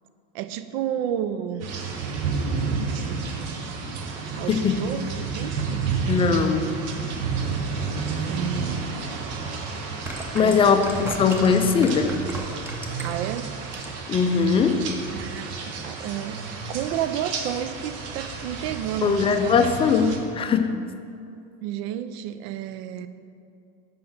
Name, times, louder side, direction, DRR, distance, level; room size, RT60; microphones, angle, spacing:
voice 1, 0.3-1.7 2.6-3.8 4.3-5.9 8.2-9.1 10.4-10.7 13.0-13.5 15.1-16.4 16.7-19.7 21.6-23.1, right 10 dB, 80° right, 11 dB, 0.5 m, -31 dB
sound 1, 1.6-20.2, right 4 dB, 55° right, 1.0 m, -31 dB
voice 2, 4.5-4.9 6.1-6.7 10.3-12.2 14.1-14.9 19.0-20.8, left 5 dB, 20° left, 8 dB, 0.3 m, -21 dB
sound 2, 8.9-9.0 9.8-13.3 13.6-14.1 14.4-14.5, right 1 dB, 10° right, 0.8 m, -36 dB
5.4 x 5.4 x 5.8 m, 2.5 s
supercardioid pair, 125°, 30 cm